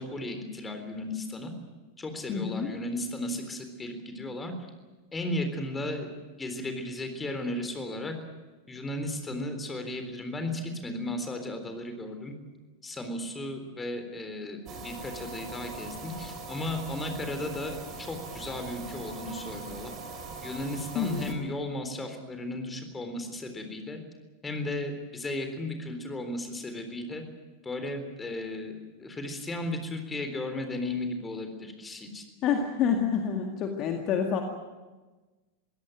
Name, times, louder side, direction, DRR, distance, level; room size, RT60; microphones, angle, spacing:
voice 1, 0.0-1.5 2.0-4.5 5.1-6.1 6.4-8.1 8.7-12.4 12.8-19.9 20.4-24.0 24.4-27.2 27.6-32.2, left 1 dB, 15° left, 7 dB, 3.7 m, -35 dB
voice 2, 2.3-2.7 20.9-21.3 32.4-34.4, left 7 dB, 35° left, 3 dB, 2.0 m, -28 dB
sound 1, 14.7-21.3, right 3 dB, 35° right, 3.6 m, -41 dB
23.0 x 17.0 x 9.2 m, 1.2 s
figure-of-eight pair, 90°, 0 cm